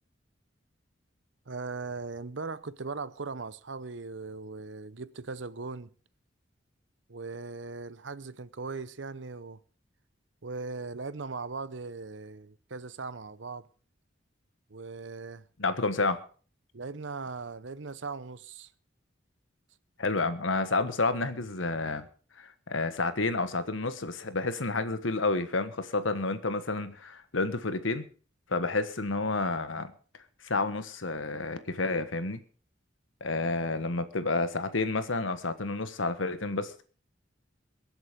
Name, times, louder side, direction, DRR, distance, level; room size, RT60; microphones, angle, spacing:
voice 1, 1.5-5.9 7.1-9.6 10.4-13.7 14.7-15.4 16.7-18.7, right 4 dB, 75° right, 0.8 m, -39 dB
voice 2, 15.6-16.2 20.0-22.1 22.4-28.0 28.5-29.9 30.4-32.4 33.2-36.8, left 3 dB, 85° left, 1.4 m, -30 dB
22.5 x 8.1 x 5.2 m
head